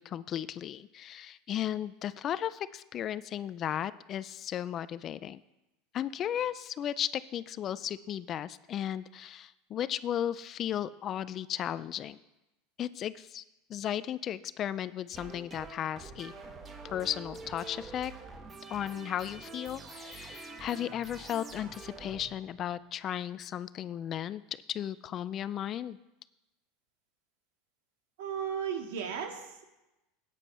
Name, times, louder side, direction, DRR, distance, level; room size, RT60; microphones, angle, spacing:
voice 1, 0.0-5.4 5.9-12.2 12.8-13.4 13.7-16.3 16.8-18.1 18.7-24.4 24.7-26.0, left 10 dB, 40° left, 17 dB, 0.4 m, -35 dB
sound 1, 15.1-22.9, right 3 dB, 25° right, 1.4 m, -46 dB
voice 2, 28.2-29.6, right 7 dB, 75° right, 4 dB, 2.0 m, -35 dB
13.5 x 9.1 x 4.3 m, 0.97 s
supercardioid pair, 120°, 0 cm